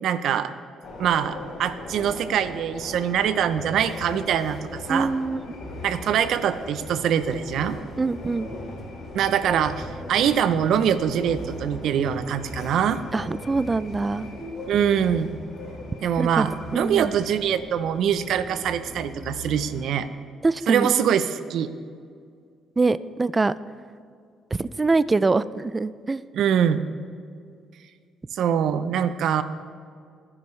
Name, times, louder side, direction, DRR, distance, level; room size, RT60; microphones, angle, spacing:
voice 1, 0.0-0.5 1.0-5.1 5.8-7.8 9.1-13.0 14.7-15.3 16.0-20.1 20.7-21.7 26.3-26.8 28.3-29.4, right 8 dB, 70° right, 12 dB, 0.7 m, -23 dB
sound 1, 0.8-20.0, left 2 dB, 60° left, 4.0 m, -38 dB
voice 2, 4.9-5.4 8.0-8.5 13.1-14.3 16.2-17.1 20.4-20.9 22.8-23.5 24.6-26.2, right 3 dB, 20° right, 17 dB, 0.4 m, -24 dB
21.5 x 9.8 x 3.3 m, 2.2 s
cardioid pair, 105°, 0 cm